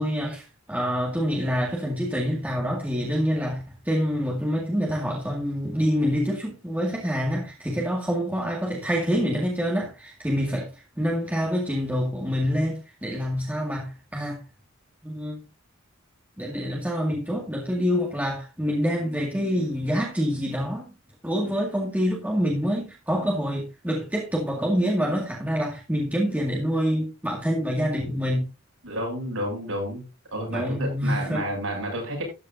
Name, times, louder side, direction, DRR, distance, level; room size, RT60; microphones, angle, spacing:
voice 1, 0.0-10.7 11.0-14.4 15.0-15.4 16.4-20.9 21.2-28.5 30.5-31.4, equal, 10° right, 2.1 m, -26 dB
voice 2, 28.8-30.0 30.3-32.2, equal, 70° right, 7.3 m, -30 dB
13.0 x 10.0 x 2.7 m
head